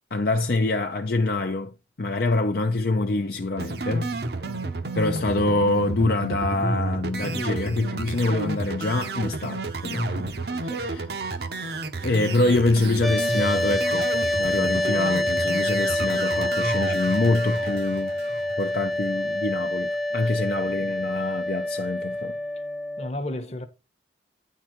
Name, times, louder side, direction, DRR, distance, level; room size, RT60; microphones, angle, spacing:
voice 1, 0.1-4.1 4.9-10.3 10.6-11.0 12.0-18.1 18.6-22.3, left 2 dB, 55° left, 0.6 m, -25 dB
sound 1, 3.6-18.9, right 3 dB, 60° right, 0.9 m, -31 dB
voice 2, 4.4-4.9 7.2-7.8 10.5-10.9 20.1-20.5 23.0-23.7, left 1 dB, 35° left, 1.0 m, -35 dB
sound 2, 13.0-23.1, left 1 dB, ahead, 0.6 m, -26 dB
9.5 x 3.9 x 4.5 m
head